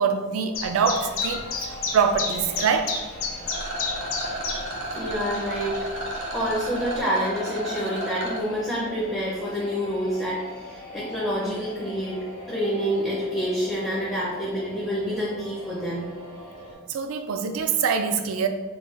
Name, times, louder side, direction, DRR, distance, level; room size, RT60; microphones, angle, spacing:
voice 1, 0.0-3.0 16.9-18.5, right 6 dB, 70° right, 7 dB, 0.3 m, -24 dB
Chirp tweet, 0.5-7.0, left 4 dB, 65° left, 0.5 m, -32 dB
sound 1, 0.8-16.7, left 1 dB, 85° left, 1.2 m, -41 dB
Rattle, 3.4-8.4, right 1 dB, 55° right, 0.7 m, -33 dB
voice 2, 4.9-5.8 6.3-10.4 10.7-12.2 12.5-16.1, equal, 5° left, -7 dB, 0.5 m, -27 dB
3.9 x 2.2 x 2.4 m, 1.3 s
head